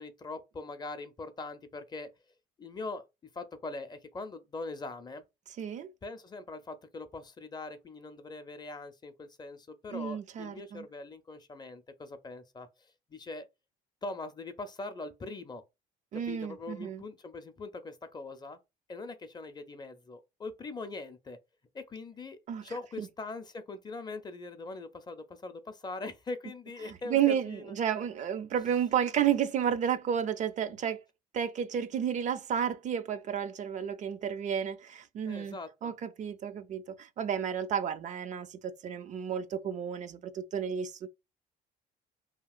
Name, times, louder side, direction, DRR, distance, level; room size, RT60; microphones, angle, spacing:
voice 1, 0.0-2.1 2.6-3.0 3.3-5.2 6.0-13.5 14.0-15.6 16.1-18.6 18.9-21.4 21.7-27.6 28.0-28.1 35.3-35.9, left 3 dB, 25° left, 0.5 m, -42 dB
voice 2, 5.6-5.9 9.9-10.9 16.1-17.0 22.5-22.6 23.0-23.1 26.8-31.0 31.3-35.6 35.8-41.1, right 8 dB, 45° right, 0.4 m, -32 dB
2.8 x 2.8 x 2.3 m
cardioid pair, 110°, 17 cm